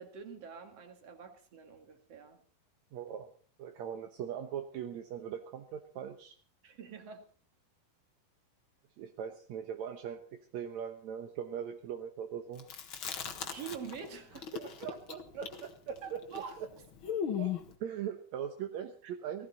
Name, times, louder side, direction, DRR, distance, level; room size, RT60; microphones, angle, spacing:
voice 1, 0.0-2.4 6.6-7.2 13.4-14.5 16.0-16.6 19.0-19.1 19.4-19.5, right 7 dB, 45° right, 6 dB, 2.9 m, -46 dB
voice 2, 2.9-3.3 3.6-6.4 9.0-10.2 10.5-12.7 14.5-16.7 17.4-19.5, right 8 dB, 65° right, 5 dB, 2.0 m, -40 dB
Chewing mastication, 12.6-14.1 14.3-17.7, left 8 dB, 50° left, 1.6 m, -38 dB
19.0 x 15.0 x 4.2 m, 0.41 s
omnidirectional pair, 4.2 m